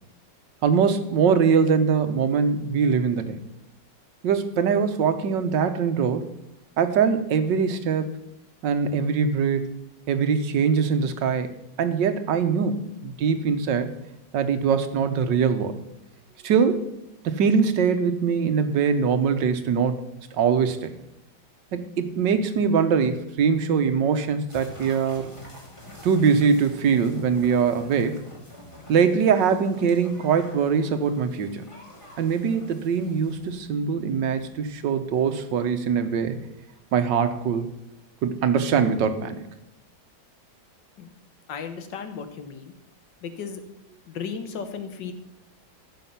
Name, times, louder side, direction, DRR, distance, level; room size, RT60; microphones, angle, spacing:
voice 1, 0.6-3.4 4.2-6.3 6.8-8.1 8.6-9.7 10.1-13.9 14.3-15.8 16.4-16.9 17.2-20.1 20.3-20.9 21.7-25.3 26.0-28.2 28.9-31.6 32.2-36.4 36.9-37.7 38.2-39.5, right 6 dB, 85° right, 9 dB, 1.7 m, -22 dB
sound 1, 24.5-33.5, left 1 dB, 15° left, 2.6 m, -46 dB
voice 2, 41.5-42.7 43.2-43.6 44.1-45.1, left 6 dB, 80° left, 9 dB, 1.8 m, -35 dB
15.0 x 6.5 x 5.7 m, 0.86 s
omnidirectional pair, 1.9 m